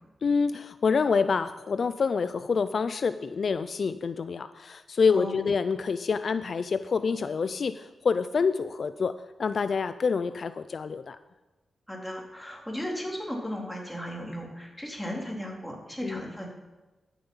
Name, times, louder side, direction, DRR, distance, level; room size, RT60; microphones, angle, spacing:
voice 1, 0.2-9.1 9.4-11.2 16.0-16.2, left 5 dB, 60° left, 12 dB, 0.4 m, -27 dB
voice 2, 5.1-5.4 11.9-16.5, equal, 5° left, -2 dB, 3.6 m, -36 dB
13.5 x 7.0 x 5.6 m, 1.1 s
cardioid pair, 60°, 0 cm